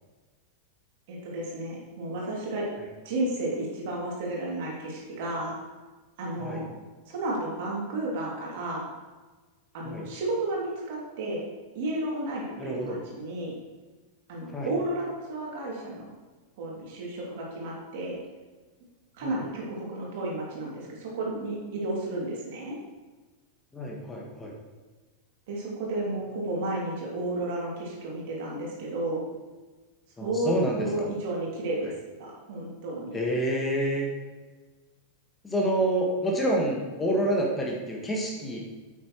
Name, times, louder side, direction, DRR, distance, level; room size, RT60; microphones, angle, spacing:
voice 1, 1.1-2.7 3.0-5.5 6.2-6.7 7.1-8.8 9.7-11.4 11.7-13.5 14.3-16.1 16.6-18.2 19.1-22.8 25.5-29.2 30.2-31.9 32.2-33.2, right 2 dB, 50° right, -3 dB, 2.8 m, -32 dB
voice 2, 12.6-13.0 14.5-14.7 19.2-19.3 23.7-24.5 30.2-31.1 33.1-34.1 35.4-38.6, right 1 dB, 15° left, -2 dB, 1.7 m, -28 dB
9.1 x 8.4 x 3.2 m, 1.3 s
figure-of-eight pair, 90°, 0 cm